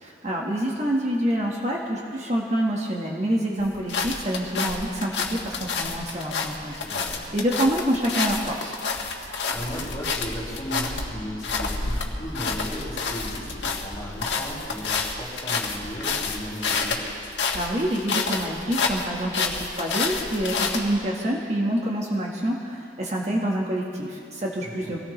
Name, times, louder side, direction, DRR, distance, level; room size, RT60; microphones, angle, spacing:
voice 1, 0.0-8.7 17.5-25.0, right 1 dB, 40° right, -2 dB, 1.5 m, -27 dB
sound 1, 3.6-21.0, left 4 dB, 85° left, 1.6 m, -29 dB
voice 2, 6.8-7.3 9.2-17.0 24.6-24.9, equal, 20° left, -7 dB, 5.0 m, -36 dB
25.0 x 17.5 x 3.3 m, 2.5 s
head